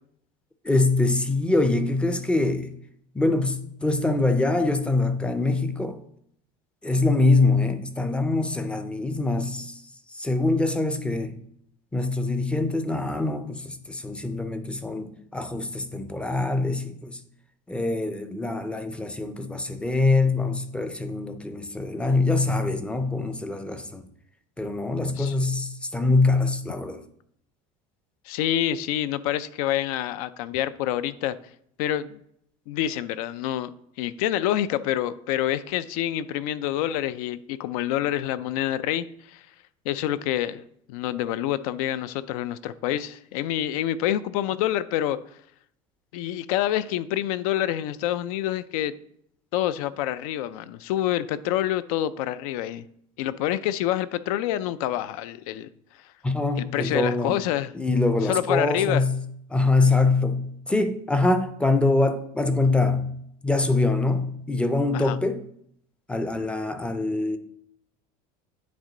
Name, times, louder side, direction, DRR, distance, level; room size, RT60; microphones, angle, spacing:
voice 1, 0.6-2.7 3.1-6.0 6.8-9.8 10.1-11.3 11.9-17.2 17.7-24.1 24.6-27.0 56.2-57.4 57.7-59.2 59.5-63.1 63.4-65.4 66.1-67.4, left 2 dB, 5° left, 0.4 m, -24 dB
voice 2, 25.0-25.3 28.3-31.4 31.8-32.2 32.7-33.7 34.0-39.4 39.9-45.2 46.1-48.9 49.5-52.9 53.2-55.7 56.6-57.7 58.3-59.0 64.9-65.2, left 12 dB, 90° left, 0.5 m, -27 dB
9.4 x 4.5 x 3.8 m
cardioid pair, 160°, 18 cm